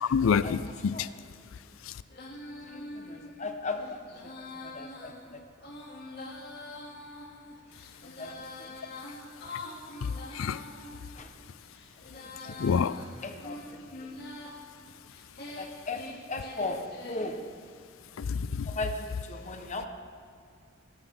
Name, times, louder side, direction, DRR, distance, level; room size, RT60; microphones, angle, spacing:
voice 1, 0.0-1.1 10.0-10.6 12.6-13.0 18.2-18.7, left 6 dB, 70° left, 0.4 m, -27 dB
Female singing, 2.1-11.0 11.6-14.6 15.1-17.4, left 2 dB, 50° left, 2.8 m, -44 dB
voice 2, 2.5-5.5 5.8-5.9 8.0-8.8 11.1-11.3 12.1-14.1 15.5-17.4 18.6-19.9, left 2 dB, 35° left, 1.3 m, -38 dB
22.5 x 13.5 x 3.8 m
head